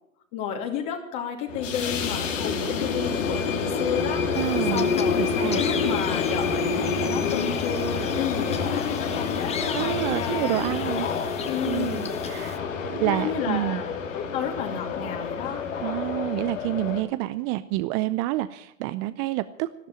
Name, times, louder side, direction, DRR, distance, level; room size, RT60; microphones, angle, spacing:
voice 1, 0.3-4.3 4.7-10.6 11.4-12.1 13.0-13.8 14.1-15.6, left 7 dB, 40° left, 2 dB, 2.6 m, -32 dB
sound 1, 1.5-17.0, left 5 dB, 70° left, 2.9 m, -28 dB
sound 2, 4.3-12.6, left 7 dB, 15° left, 1.0 m, -38 dB
voice 2, 4.4-4.9 5.2-5.6 9.7-11.1 11.7-13.8 15.8-19.7, right 17 dB, 30° right, 14 dB, 0.5 m, -28 dB
13.0 x 13.0 x 8.4 m, 0.79 s
figure-of-eight pair, 105°, 39 cm